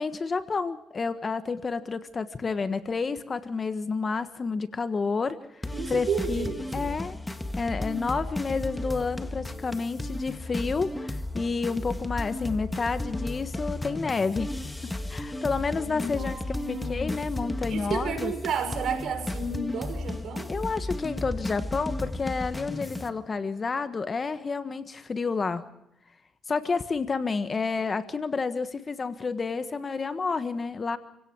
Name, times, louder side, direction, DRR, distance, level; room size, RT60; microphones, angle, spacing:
voice 1, 0.0-6.4 6.7-7.2 7.6-14.5 14.8-16.4 16.7-18.3 20.5-25.6 26.5-31.0, left 4 dB, 35° left, 11 dB, 1.4 m, -30 dB
sound 1, 5.6-23.1, left 1 dB, 10° left, 1.8 m, -34 dB
voice 2, 5.7-7.0 15.8-17.1 17.7-20.5, right 5 dB, 70° right, 6 dB, 6.2 m, -32 dB
28.5 x 17.0 x 6.3 m, 0.83 s
cardioid pair, 90°, 0 cm